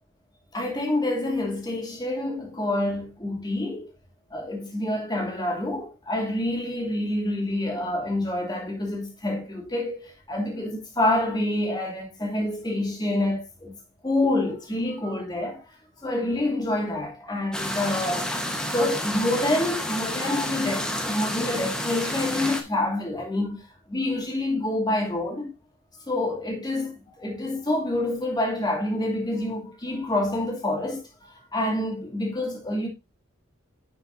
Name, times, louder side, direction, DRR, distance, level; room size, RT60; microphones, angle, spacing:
voice 1, 0.5-3.9 4.3-13.8 14.0-15.7 16.0-23.6 23.9-25.5 26.1-32.9, left 1 dB, 20° left, 2.5 m, -27 dB
sound 1, 17.5-22.6, left 1 dB, 5° left, 1.1 m, -30 dB
10.5 x 5.7 x 2.6 m
head